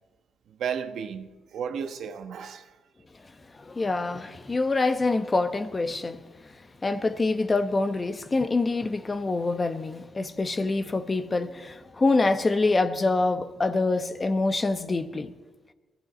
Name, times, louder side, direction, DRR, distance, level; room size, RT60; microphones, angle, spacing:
voice 1, 0.6-2.7, right 7 dB, 75° right, 1.1 m, -33 dB
voice 2, 3.6-6.2 6.8-15.3, left 3 dB, 25° left, 0.9 m, -25 dB
22.5 x 14.0 x 4.3 m
cardioid pair, 100°, 0 cm